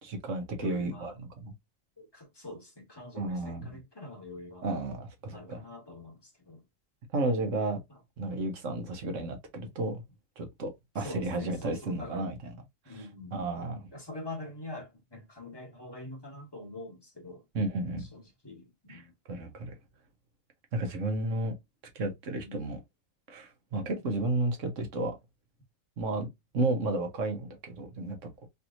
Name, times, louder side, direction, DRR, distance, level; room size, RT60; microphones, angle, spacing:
voice 1, 0.0-1.5 3.1-3.8 4.6-5.6 7.1-7.8 8.2-10.0 10.4-12.4 12.9-13.1 13.3-13.9 17.5-18.1 18.9-19.0 19.3-19.7 20.7-21.5 21.9-22.8 23.3-25.2 26.0-26.3 26.5-28.3, right 2 dB, 70° right, 1.3 m, -32 dB
voice 2, 0.6-1.2 2.0-4.7 5.3-6.6 7.9-8.0 11.0-12.3 12.8-13.4 13.9-17.4 18.0-19.1 22.4-22.7 23.8-24.0, left 2 dB, 20° left, 1.0 m, -44 dB
3.3 x 2.9 x 2.5 m
omnidirectional pair, 1.3 m